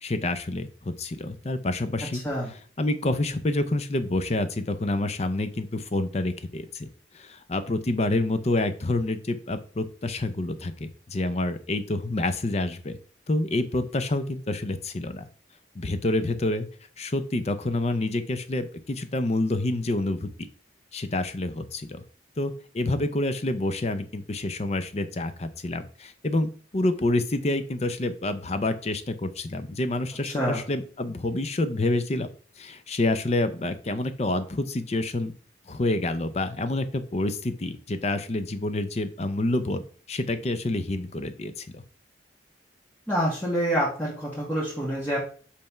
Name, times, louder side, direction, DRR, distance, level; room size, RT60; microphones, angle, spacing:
voice 1, 0.0-2.2 2.8-6.9 7.1-13.0 13.3-15.2 15.7-16.7 17.0-20.3 20.9-22.0 22.4-32.3 32.6-35.3 35.7-39.8 40.1-41.8, left 2 dB, 35° left, 10 dB, 0.6 m, -28 dB
voice 2, 43.1-45.2, equal, 10° left, -6 dB, 1.7 m, -26 dB
5.4 x 3.4 x 5.6 m, 0.41 s
head